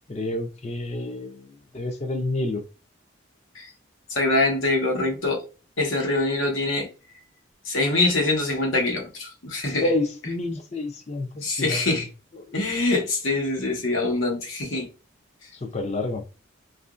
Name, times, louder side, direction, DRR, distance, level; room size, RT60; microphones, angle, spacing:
voice 1, 0.1-2.6 9.8-11.9 15.6-16.2, left 2 dB, 35° left, 0.5 m, -29 dB
voice 2, 4.1-5.4 5.8-6.9 7.6-9.9 11.4-12.1 12.5-14.9, left 2 dB, 80° left, 1.0 m, -24 dB
2.8 x 2.4 x 2.4 m
head